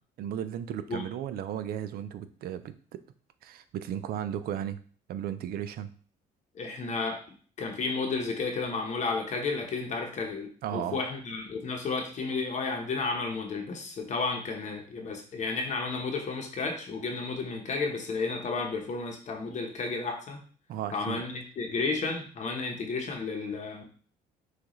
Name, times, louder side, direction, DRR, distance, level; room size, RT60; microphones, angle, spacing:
voice 1, 0.2-3.0 3.4-4.8 5.1-5.9 10.6-11.0 20.7-21.2, right 10 dB, 65° right, 11 dB, 0.5 m, -35 dB
voice 2, 6.5-7.2 7.6-20.4 20.9-23.9, left 4 dB, 45° left, 2 dB, 0.9 m, -32 dB
6.2 x 2.5 x 3.1 m, 0.43 s
cardioid pair, 110°, 17 cm